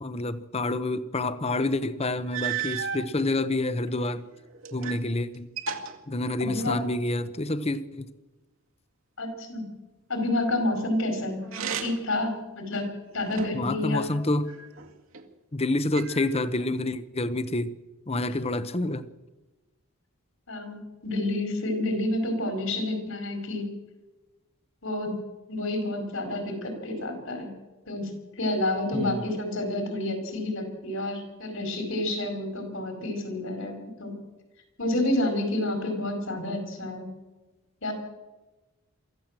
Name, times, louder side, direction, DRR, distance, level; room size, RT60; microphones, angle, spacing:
voice 1, 0.0-4.3 4.7-5.5 6.1-8.1 13.5-14.5 15.5-17.8 18.1-19.1 28.9-29.3, left 2 dB, 30° left, 14 dB, 0.9 m, -28 dB
sound 1, 1.7-1.8 2.3-3.1 3.9-5.1 5.3-6.9 11.4-12.2 12.7-13.7 14.5-15.3 15.9-16.7, right 7 dB, 65° right, 2.1 m, -35 dB
voice 2, 6.4-6.8 9.2-9.6 10.1-11.4 11.8-12.9 13.1-14.1 20.5-23.7 24.8-25.2 25.5-27.5 27.8-34.1 34.8-37.1 37.8-37.9, left 1 dB, 65° left, 6 dB, 5.0 m, -29 dB
24.0 x 14.5 x 7.6 m, 1.2 s
head